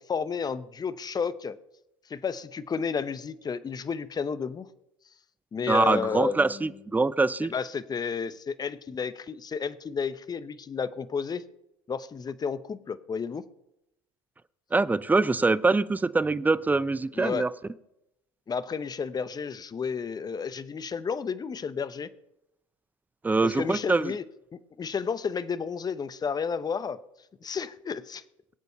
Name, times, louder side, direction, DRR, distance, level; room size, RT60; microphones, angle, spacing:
voice 1, 0.0-1.6 2.1-4.7 5.5-6.7 7.5-11.4 11.9-13.4 17.1-17.4 18.5-22.1 23.4-24.2 24.8-27.0 27.4-28.2, left 6 dB, 25° left, 15 dB, 0.9 m, -32 dB
voice 2, 5.7-7.5 14.7-17.5 23.2-24.1, right 3 dB, 10° right, 17 dB, 0.6 m, -24 dB
22.5 x 8.1 x 5.5 m, 0.86 s
figure-of-eight pair, 70°, 16 cm